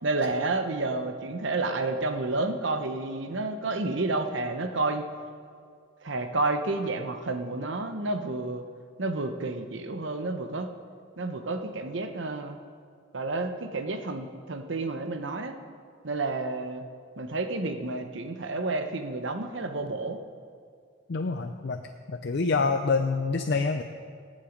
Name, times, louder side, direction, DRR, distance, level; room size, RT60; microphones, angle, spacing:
voice 1, 0.0-5.0 6.0-8.6 9.0-10.7 11.2-12.6 13.1-15.6 16.0-16.8 17.2-20.2, right 2 dB, 65° right, 7 dB, 0.9 m, -30 dB
voice 2, 21.1-21.8 22.1-23.8, left 4 dB, 55° left, 6 dB, 0.5 m, -26 dB
18.0 x 7.5 x 5.2 m, 2.2 s
head